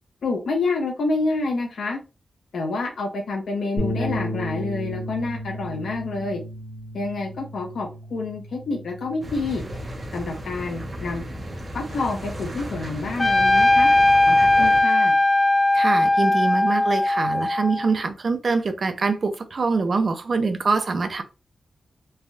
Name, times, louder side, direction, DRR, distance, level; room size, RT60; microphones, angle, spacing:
voice 1, 0.2-2.0 2.5-6.4 6.9-9.6 10.1-11.2 11.7-13.9 14.3-15.2, left 3 dB, 85° left, 0.6 m, -28 dB
sound 1, 3.8-10.0, left 1 dB, 60° left, 1.1 m, -33 dB
sound 2, 9.2-14.8, equal, 35° right, 0.8 m, -34 dB
Trumpet, 13.2-17.9, left 2 dB, 25° left, 0.3 m, -18 dB
voice 2, 15.7-21.2, right 4 dB, 55° right, 0.5 m, -24 dB
3.3 x 2.6 x 2.2 m
wide cardioid pair, 85°, 0 cm